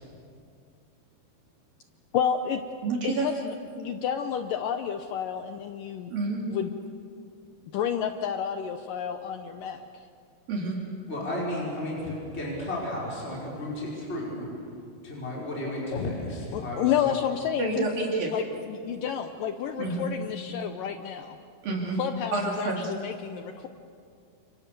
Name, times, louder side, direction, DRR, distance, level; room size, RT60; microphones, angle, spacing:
voice 1, 2.1-2.6 3.0-6.1 6.5-6.7 7.7-9.9 15.7-16.1 16.5-17.9 18.3-21.4 22.0-23.7, left 8 dB, 75° left, 7 dB, 2.2 m, -30 dB
voice 2, 2.8-3.3 6.1-6.4 10.5-10.8 17.6-18.3 19.8-20.0 21.6-22.0 22.3-22.9, right 3 dB, 65° right, -1 dB, 4.5 m, -28 dB
voice 3, 11.1-14.5 15.0-17.1, left 1 dB, 15° left, -5 dB, 5.5 m, -33 dB
29.5 x 28.0 x 6.8 m, 2.4 s
omnidirectional pair, 4.5 m